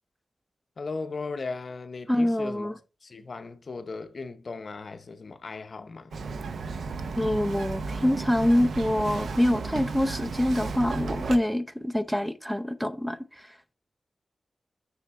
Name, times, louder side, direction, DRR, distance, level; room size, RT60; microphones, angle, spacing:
voice 1, 0.8-6.2, left 4 dB, 55° left, 0.7 m, -37 dB
voice 2, 2.1-2.7 7.2-13.5, left 1 dB, 5° right, 0.7 m, -25 dB
Bird vocalization bird call bird song, 6.1-11.4, right 4 dB, 85° right, 0.7 m, -33 dB
7.1 x 6.3 x 3.5 m
wide cardioid pair, 105°, 0 cm